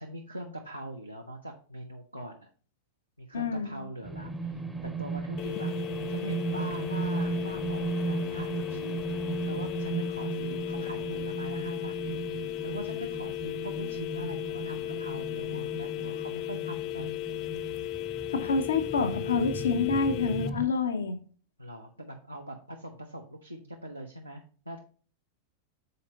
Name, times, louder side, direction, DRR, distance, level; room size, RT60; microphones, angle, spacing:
voice 1, 0.0-2.5 3.2-9.1 9.5-17.2 21.6-24.8, right 1 dB, 85° right, 1 dB, 0.6 m, -42 dB
voice 2, 3.3-3.8 18.3-21.2, left 4 dB, 70° left, 8 dB, 0.7 m, -27 dB
sound 1, 4.0-20.7, right 3 dB, 5° right, 0.7 m, -36 dB
sound 2, 5.4-20.5, left 14 dB, 40° left, 0.4 m, -36 dB
6.7 x 4.3 x 3.9 m, 0.41 s
figure-of-eight pair, 90°, 0 cm